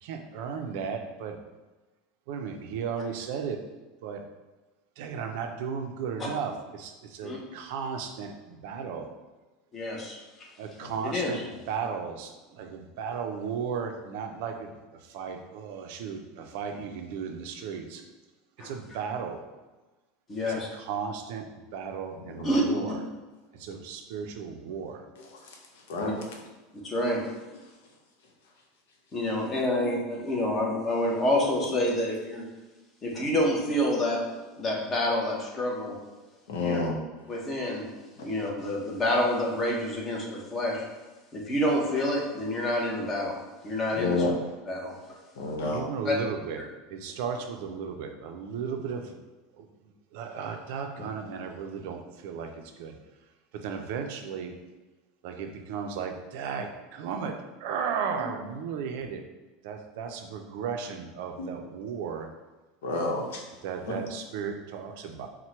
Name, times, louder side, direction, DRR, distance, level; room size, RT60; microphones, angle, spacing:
voice 1, 0.0-1.4 2.3-3.6 4.0-4.2 5.0-9.1 10.6-14.7 15.0-18.0 18.6-19.4 20.5-21.5 21.7-23.0 23.5-25.0 45.7-46.6 46.9-49.2 49.5-49.7 50.1-52.5 52.8-53.0 53.5-54.5 55.2-57.3 57.6-59.2 59.6-62.3 63.6-65.3, right 6 dB, 60° right, 4 dB, 0.5 m, -35 dB
voice 2, 9.7-10.2 11.0-11.4 18.6-18.7 20.3-20.7 22.4-22.6 26.0-26.1 26.8-27.2 29.1-32.5 33.0-34.2 34.6-36.0 36.6-36.8 37.3-37.8 38.2-40.8 41.3-43.4 43.6-44.2 44.7-44.9 46.0-46.1, left 1 dB, 20° left, -2 dB, 0.8 m, -27 dB
voice 3, 22.2-22.8 25.2-25.6 25.9-26.2 36.5-37.0 38.2-38.3 43.9-44.3 45.4-45.8 51.0-51.1 61.4-61.5 62.8-63.4 63.9-64.0, left 3 dB, 85° left, 0 dB, 0.9 m, -30 dB
4.4 x 2.2 x 4.3 m, 1.2 s
supercardioid pair, 165°, 0 cm